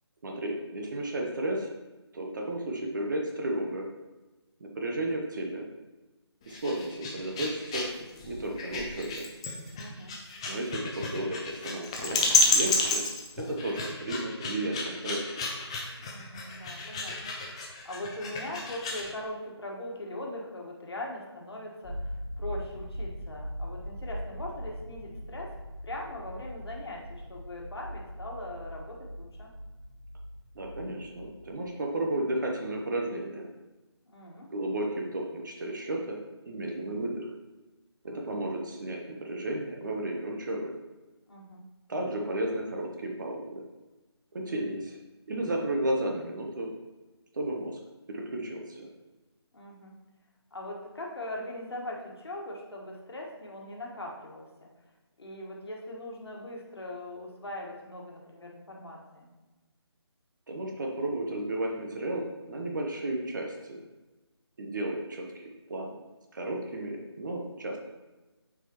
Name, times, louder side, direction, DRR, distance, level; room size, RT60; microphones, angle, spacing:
voice 1, 0.2-1.7 2.1-3.9 4.6-5.6 6.5-7.9 8.3-9.3 10.5-12.2 12.5-13.1 13.4-15.5 30.5-33.5 34.5-37.3 38.0-40.7 41.9-43.6 44.3-45.0 45.3-46.7 47.3-47.8 48.1-48.9 60.5-63.9 64.6-65.9 66.3-67.8, right 1 dB, 45° right, 1 dB, 0.9 m, -33 dB
sound 1, 6.4-19.1, left 3 dB, 10° left, 0.4 m, -31 dB
voice 2, 9.7-10.2 16.0-25.5 25.8-29.5 34.1-34.5 38.0-38.5 41.3-41.6 49.5-49.9 50.5-54.7 55.2-59.3, left 1 dB, 65° left, -1 dB, 1.5 m, -41 dB
sound 2, 21.8-31.7, equal, 40° left, 1.4 m, -40 dB
7.8 x 4.7 x 3.0 m, 1.2 s
figure-of-eight pair, 155°, 14 cm